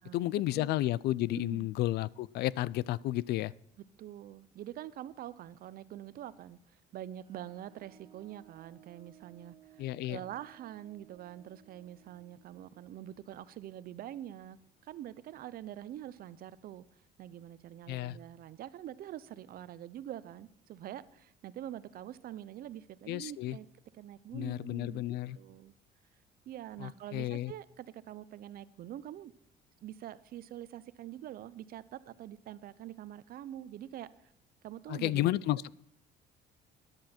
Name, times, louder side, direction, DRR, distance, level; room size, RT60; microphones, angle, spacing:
voice 1, 0.1-3.5 9.8-10.2 17.9-18.2 23.1-23.6 24.3-25.4 26.8-27.5 34.9-35.7, left 15 dB, 75° left, 0.4 m, -32 dB
voice 2, 1.3-1.7 4.0-16.9 17.2-23.7 23.9-25.0 25.3-25.7 26.5-29.3 29.8-34.1 34.6-35.5, right 12 dB, 60° right, 0.6 m, -45 dB
sound 1, 7.2-14.6, right 13 dB, 25° right, 2.0 m, -61 dB
13.5 x 10.5 x 4.4 m
cardioid pair, 110°, 17 cm